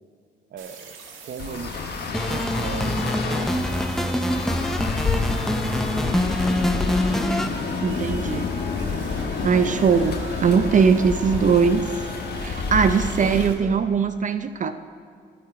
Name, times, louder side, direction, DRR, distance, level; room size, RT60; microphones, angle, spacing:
voice 1, 0.5-0.9 1.2-1.9 2.3-3.5 4.5-4.8 6.0-7.1 13.2-13.8, right 7 dB, 55° right, 10 dB, 0.9 m, -38 dB
sound 1, 0.6-13.5, right 4 dB, 80° right, 1.7 m, -41 dB
Traffic noise roadway noise, 1.4-13.5, left 4 dB, 55° left, 1.2 m, -29 dB
sound 2, 2.1-7.5, left 1 dB, ahead, 0.6 m, -25 dB
voice 2, 7.8-8.5 9.4-11.9 12.4-14.7, right 6 dB, 40° right, 11 dB, 0.5 m, -20 dB
12.0 x 11.5 x 4.9 m, 2.3 s
cardioid pair, 90°, 20 cm